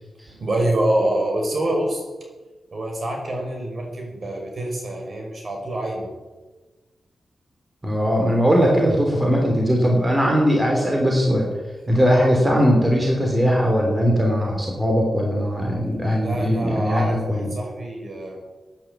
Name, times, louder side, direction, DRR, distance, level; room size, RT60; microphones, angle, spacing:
voice 1, 0.3-2.0 2.7-6.1 16.2-18.4, right 1 dB, 50° right, 1 dB, 5.5 m, -26 dB
voice 2, 7.8-11.5 11.9-17.5, equal, 20° right, 0 dB, 3.4 m, -19 dB
13.5 x 10.5 x 8.7 m, 1.2 s
wide cardioid pair, 95°, 0 cm